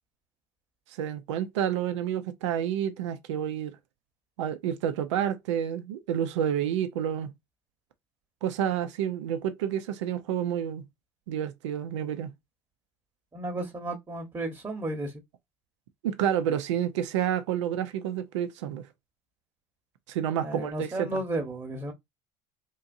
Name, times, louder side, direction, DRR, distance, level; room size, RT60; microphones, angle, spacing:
voice 1, 1.0-3.7 4.4-7.3 8.4-10.8 11.3-12.3 16.0-18.9 20.1-21.2, right 9 dB, 80° right, 0.6 m, -29 dB
voice 2, 13.3-15.1 20.4-21.9, right 1 dB, 25° right, 1.1 m, -33 dB
3.7 x 2.7 x 2.6 m
hypercardioid pair, 65°, 15 cm